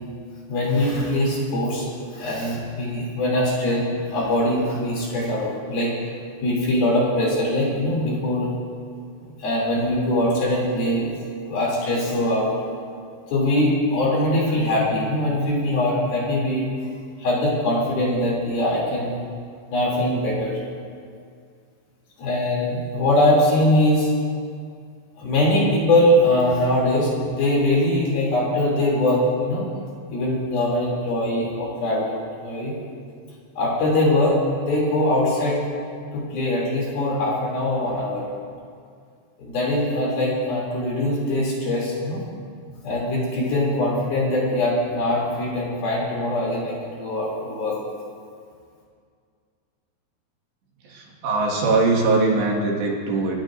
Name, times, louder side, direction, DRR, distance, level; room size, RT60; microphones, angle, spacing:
voice 1, 0.5-5.9 6.4-8.5 9.4-11.1 11.5-12.5 13.3-16.7 17.2-19.2 19.7-20.6 22.2-24.1 25.2-29.7 30.1-32.7 33.6-35.6 36.1-38.2 39.4-42.2 42.8-47.7, left 1 dB, 55° left, -5 dB, 4.5 m, -22 dB
voice 2, 50.8-53.4, right 3 dB, 70° right, -3 dB, 3.9 m, -21 dB
27.5 x 13.0 x 2.6 m, 2.2 s
omnidirectional pair, 5.5 m